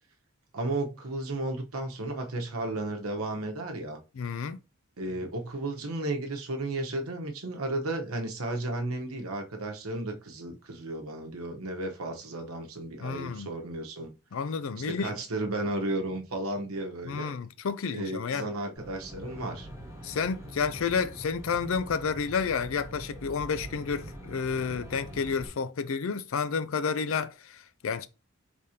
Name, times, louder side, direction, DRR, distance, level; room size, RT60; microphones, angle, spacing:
voice 1, 0.5-4.0 5.0-14.1 14.7-17.4 17.9-19.7, right 2 dB, 80° right, 1.0 m, -34 dB
voice 2, 4.2-4.6 13.0-13.5 14.3-15.1 17.1-18.5 20.0-28.1, left 5 dB, 65° left, 0.4 m, -30 dB
Aircraft, 18.8-25.5, equal, 15° right, 2.5 m, -44 dB
5.0 x 3.5 x 2.8 m
head